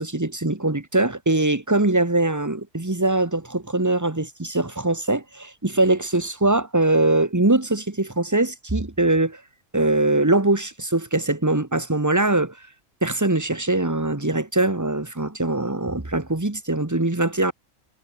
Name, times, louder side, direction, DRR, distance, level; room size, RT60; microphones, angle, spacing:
voice 1, 0.0-9.4 9.7-12.6 13.0-17.5, right 2 dB, 15° right, 1.5 m, -22 dB
omnidirectional pair, 1.4 m